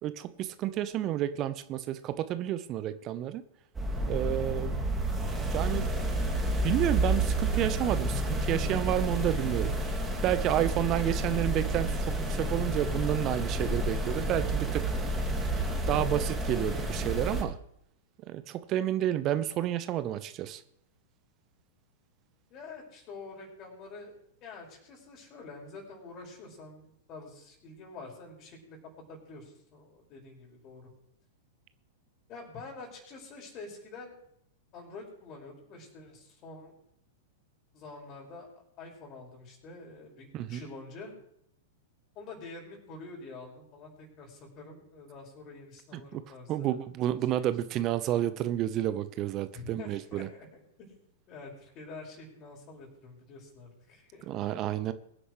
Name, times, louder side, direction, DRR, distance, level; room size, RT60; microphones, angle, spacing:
voice 1, 0.0-3.4 4.1-4.8 5.5-5.9 6.6-9.9 10.2-14.9 15.9-17.6 18.3-20.6 40.3-40.6 46.1-46.2 46.5-50.3 54.3-54.9, right 12 dB, 35° right, 13 dB, 1.0 m, -30 dB
sound 1, 3.8-17.4, right 1 dB, 15° right, 2.7 m, -30 dB
voice 2, 22.5-24.1 24.4-30.9 32.3-34.2 34.7-36.7 37.7-38.5 38.8-41.1 42.1-46.8 47.3-47.5 49.5-51.0 51.3-54.3, left 3 dB, 35° left, -1 dB, 5.7 m, -47 dB
23.0 x 9.9 x 3.3 m, 0.74 s
figure-of-eight pair, 100°, 0 cm